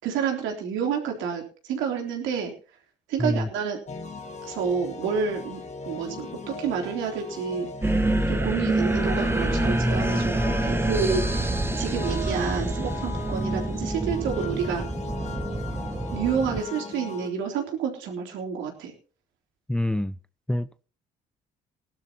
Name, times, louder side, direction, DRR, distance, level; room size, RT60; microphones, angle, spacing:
voice 1, 0.0-2.5 3.1-3.8 4.4-7.7 8.3-14.9 16.1-18.9, right 6 dB, 75° right, 3.5 m, -29 dB
sound 1, 3.9-17.3, left 4 dB, 35° left, 1.9 m, -38 dB
sound 2, 7.8-16.6, right 1 dB, 10° right, 1.3 m, -26 dB
voice 2, 19.7-20.2 20.5-20.8, left 1 dB, 5° left, 0.5 m, -26 dB
19.0 x 12.0 x 3.0 m
supercardioid pair, 65°, 20 cm